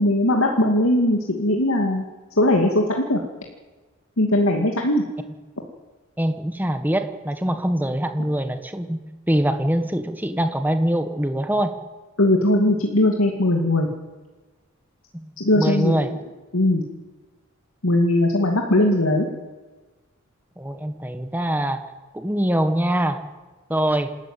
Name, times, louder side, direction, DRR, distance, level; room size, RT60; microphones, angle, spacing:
voice 1, 0.0-2.0 2.4-3.2 4.2-5.0 12.2-13.9 15.4-16.2 16.5-16.8 17.8-19.3, left 1 dB, 85° left, 1 dB, 2.5 m, -19 dB
voice 2, 6.2-9.0 9.3-11.7 15.1-16.1 20.6-21.8 22.1-23.2 23.7-24.1, right 1 dB, 10° right, 8 dB, 1.4 m, -23 dB
27.5 x 13.5 x 9.3 m, 1.3 s
head